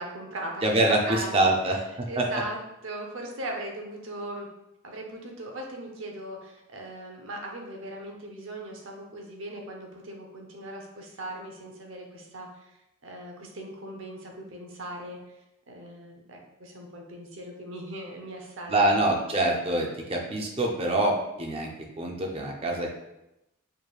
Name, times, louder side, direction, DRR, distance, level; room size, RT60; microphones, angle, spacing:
voice 1, 0.0-0.6 1.1-1.5 2.1-4.5 4.8-12.7 13.0-15.3 15.7-19.1, right 1 dB, 65° right, 1 dB, 0.7 m, -39 dB
voice 2, 0.6-2.3 18.7-21.7 22.0-22.9, right 1 dB, 25° right, 1 dB, 0.5 m, -25 dB
4.7 x 3.1 x 2.3 m, 0.90 s
head